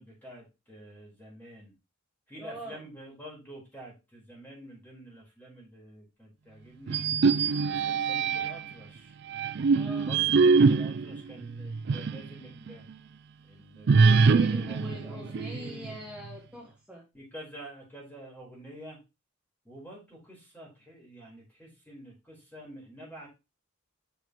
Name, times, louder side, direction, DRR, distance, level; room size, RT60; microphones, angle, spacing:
voice 1, 0.0-1.7 2.3-7.0 7.6-9.1 10.0-12.8 13.4-16.0 17.1-19.0 19.6-23.3, right 1 dB, 10° left, -3 dB, 4.6 m, -48 dB
voice 2, 2.4-2.8 9.7-10.1 14.0-17.1, equal, 5° right, -3 dB, 1.5 m, -43 dB
sound 1, 6.9-8.7 9.3-12.3 12.7-12.8 13.9-15.9, right 4 dB, 55° right, 0.4 m, -24 dB
7.3 x 6.6 x 3.1 m, 0.25 s
head